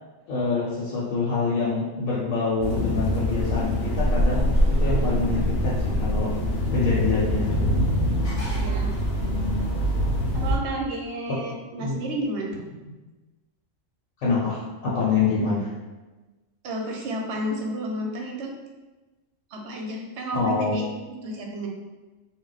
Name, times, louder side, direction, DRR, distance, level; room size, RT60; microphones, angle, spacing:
voice 1, 0.3-6.3 6.7-7.6 11.3-11.4 11.8-12.0 14.2-15.7 20.3-20.7, left 4 dB, 85° left, -7 dB, 1.0 m, -26 dB
sound 1, 2.6-10.6, equal, 60° left, 0.8 m, -24 dB
voice 2, 10.3-12.6 16.6-18.5 19.5-20.9 21.2-21.7, right 1 dB, 65° right, 0 dB, 0.8 m, -31 dB
2.3 x 2.0 x 3.8 m, 1.2 s
omnidirectional pair, 1.3 m